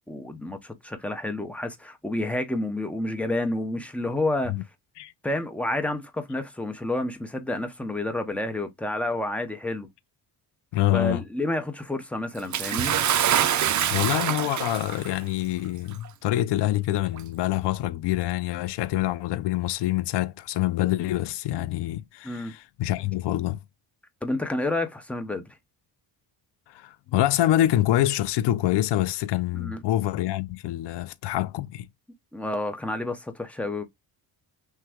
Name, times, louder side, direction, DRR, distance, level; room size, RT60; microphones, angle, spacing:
voice 1, 0.1-4.5 5.2-9.9 10.9-13.0 22.2-22.5 24.2-25.6 29.5-29.8 32.3-33.8, left 2 dB, 5° left, 0.7 m, -29 dB
voice 2, 10.7-11.2 13.9-23.6 26.7-31.9, left 14 dB, 70° left, 0.5 m, -26 dB
Bathtub (filling or washing) / Splash splatter, 12.5-15.1 16.1-16.2 17.1-17.2, right 10 dB, 45° right, 0.6 m, -24 dB
6.2 x 2.2 x 3.5 m
cardioid pair, 140°, 43 cm